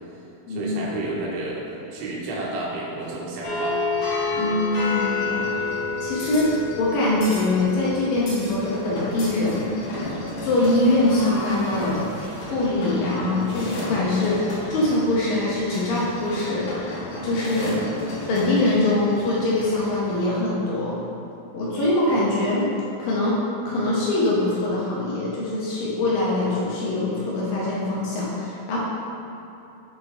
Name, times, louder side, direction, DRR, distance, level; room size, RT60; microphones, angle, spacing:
voice 1, 0.5-1.6 1.9-3.8, right 2 dB, 85° right, -4 dB, 3.3 m, -30 dB
sound 1, 3.4-20.1, left 2 dB, 90° left, 1.4 m, -31 dB
voice 2, 4.4-5.5 6.0-6.5 6.8-9.9 10.4-12.1 12.3-17.8 18.3-21.0 21.5-22.7 23.0-23.4 23.7-28.8, left 2 dB, 75° left, -7 dB, 2.2 m, -23 dB
7.6 x 3.8 x 4.5 m, 2.9 s
omnidirectional pair, 5.3 m